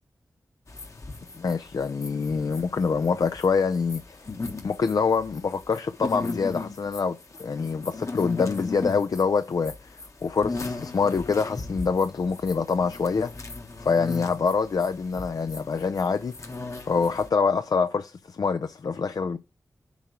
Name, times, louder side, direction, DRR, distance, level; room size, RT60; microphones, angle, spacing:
sound 1, 0.7-17.3, left 3 dB, 45° left, 1.3 m, -37 dB
voice 1, 1.4-4.2 4.6-9.9 10.2-13.3 13.8-16.3 16.9-19.4, left 5 dB, 65° left, 0.5 m, -25 dB
7.1 x 3.7 x 5.9 m
cardioid pair, 45°, 7 cm